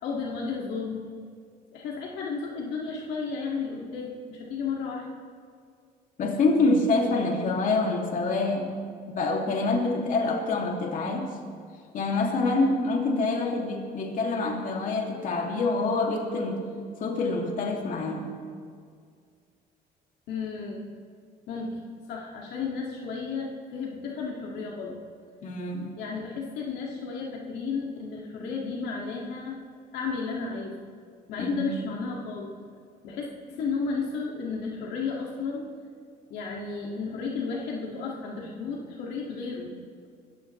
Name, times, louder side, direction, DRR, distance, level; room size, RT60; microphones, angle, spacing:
voice 1, 0.0-1.0 1.7-5.1 20.3-20.8 21.5-21.8 22.1-25.0 26.0-29.6 29.9-30.8 31.3-32.5 33.0-35.6 36.3-39.8, left 4 dB, 80° left, -2 dB, 2.4 m, -33 dB
voice 2, 6.2-8.7 9.1-11.3 11.9-16.6 17.0-18.2 25.4-26.0 31.4-31.8, left 3 dB, 55° left, 0 dB, 2.7 m, -26 dB
26.0 x 15.0 x 3.3 m, 2.1 s
cardioid pair, 110°, 17 cm